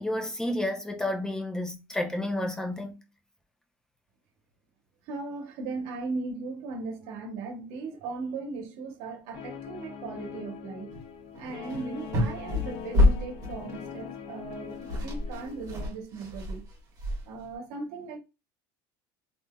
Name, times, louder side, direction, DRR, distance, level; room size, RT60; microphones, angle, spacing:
voice 1, 0.0-3.0, left 1 dB, 5° left, 0.7 m, -31 dB
voice 2, 5.1-10.9 11.4-16.6 17.2-18.2, right 4 dB, 70° right, 1.0 m, -38 dB
Guitar, 9.3-15.9, left 8 dB, 55° left, 0.6 m, -42 dB
sound 1, 10.9-11.1 11.3-13.7 14.5-14.6 14.7-17.5, left 1 dB, 35° right, 1.6 m, -28 dB
3.4 x 2.6 x 2.3 m
supercardioid pair, 125°, 11 cm